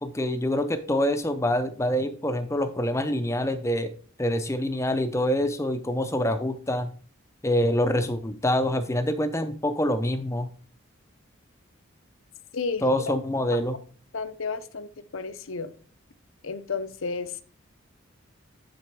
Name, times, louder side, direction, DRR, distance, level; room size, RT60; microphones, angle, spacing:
voice 1, 0.0-3.9 4.2-6.9 7.4-10.5 12.8-13.8, left 1 dB, 15° left, 0.6 m, -26 dB
voice 2, 12.5-12.8 14.1-15.7 16.4-17.4, left 4 dB, 75° left, 0.7 m, -32 dB
9.6 x 4.3 x 4.6 m
head